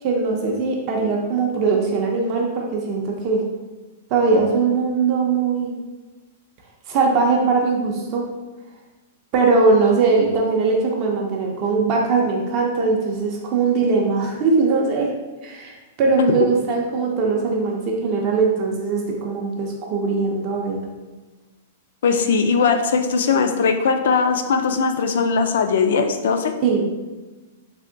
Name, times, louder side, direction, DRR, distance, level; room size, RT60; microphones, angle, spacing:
voice 1, 0.0-3.4 4.1-5.7 6.9-8.3 9.3-15.1 15.4-20.8 26.6-26.9, right 4 dB, 30° right, 0 dB, 0.4 m, -20 dB
voice 2, 22.0-26.5, left 5 dB, 70° left, 7 dB, 0.3 m, -19 dB
3.3 x 2.9 x 2.6 m, 1.2 s
supercardioid pair, 165°, 0 cm